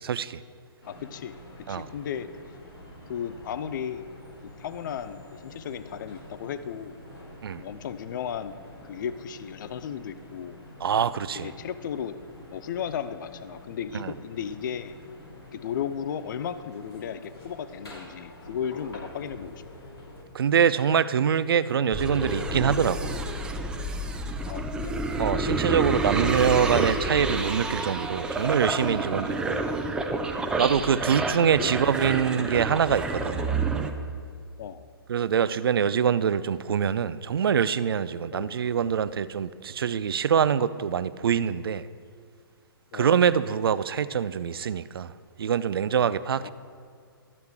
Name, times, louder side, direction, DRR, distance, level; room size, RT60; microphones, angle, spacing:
voice 1, 0.0-0.4 1.7-1.9 7.4-7.6 10.8-11.5 13.9-14.1 20.3-23.1 25.2-29.7 30.6-33.5 35.1-41.8 42.9-45.1 45.4-46.5, right 7 dB, 70° right, 0.4 m, -24 dB
sound 1, 0.8-20.2, left 1 dB, 85° left, 2.8 m, -47 dB
voice 2, 0.8-2.3 3.1-4.1 4.6-7.0 7.6-8.5 8.8-10.6 11.3-12.2 12.5-15.0 15.5-19.6 24.4-24.9 30.9-31.7 34.6-34.9 38.3-38.5 42.9-43.1 46.4-46.5, left 8 dB, 55° left, 0.4 m, -35 dB
sound 2, 21.9-33.9, right 2 dB, 5° right, 0.5 m, -29 dB
12.0 x 7.9 x 3.5 m
figure-of-eight pair, 125°, 13 cm